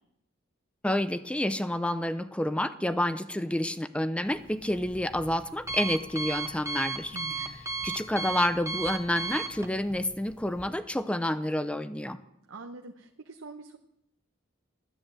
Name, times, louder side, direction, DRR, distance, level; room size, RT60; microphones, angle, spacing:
voice 1, 0.8-12.2, left 1 dB, 5° left, 11 dB, 0.5 m, -29 dB
Alarm, 4.3-10.7, right 4 dB, 15° right, 1.2 m, -37 dB
voice 2, 7.1-7.6 12.5-13.8, right 3 dB, 90° right, 3 dB, 1.0 m, -44 dB
13.5 x 10.0 x 7.7 m, 0.81 s
head